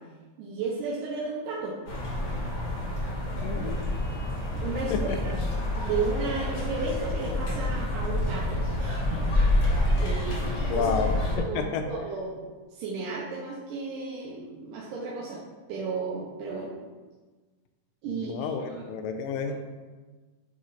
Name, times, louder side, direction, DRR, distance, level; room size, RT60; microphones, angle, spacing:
voice 1, 0.4-1.8 4.5-5.3 5.8-10.9 11.4-12.4 12.7-15.4 15.7-16.8 18.0-18.6, right 4 dB, 85° right, -4 dB, 2.4 m, -34 dB
sound 1, 1.9-11.4, left 1 dB, 50° left, 1.5 m, -28 dB
voice 2, 3.4-3.8 4.9-5.2 10.7-11.9 18.1-19.5, left 5 dB, 85° left, 6 dB, 2.2 m, -30 dB
8.7 x 3.1 x 4.0 m, 1.3 s
omnidirectional pair, 3.8 m